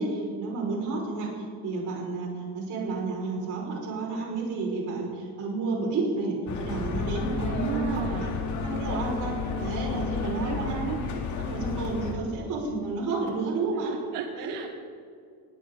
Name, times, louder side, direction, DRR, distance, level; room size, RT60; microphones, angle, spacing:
voice 1, 0.0-8.3 8.6-9.3 9.6-11.0 11.4-13.9 14.3-14.5, right 3 dB, 45° right, -1 dB, 5.5 m, -31 dB
sound 1, 6.5-12.1, left 5 dB, 40° left, 2.1 m, -31 dB
voice 2, 7.5-8.3 10.4-11.0 14.1-14.7, right 9 dB, 75° right, 5 dB, 1.2 m, -34 dB
20.0 x 18.0 x 4.0 m, 2.3 s
cardioid pair, 180°, 42 cm